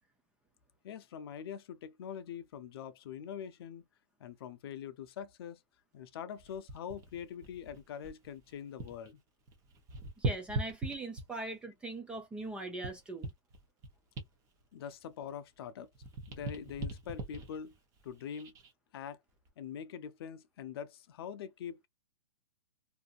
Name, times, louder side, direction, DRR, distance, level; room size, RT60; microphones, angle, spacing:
voice 1, 0.8-3.8 4.2-5.6 5.9-9.2 14.7-15.9 16.3-17.7 18.0-18.5 18.9-19.2 19.6-21.9, left 8 dB, 50° left, 0.5 m, -44 dB
sound 1, 6.4-9.1 9.4-11.5 12.1-15.6 15.9-18.7 19.3-19.5, right 2 dB, 20° right, 0.8 m, -41 dB
voice 2, 10.2-13.3, right 2 dB, 5° right, 0.3 m, -40 dB
2.6 x 2.5 x 2.3 m
hypercardioid pair, 150°, 16 cm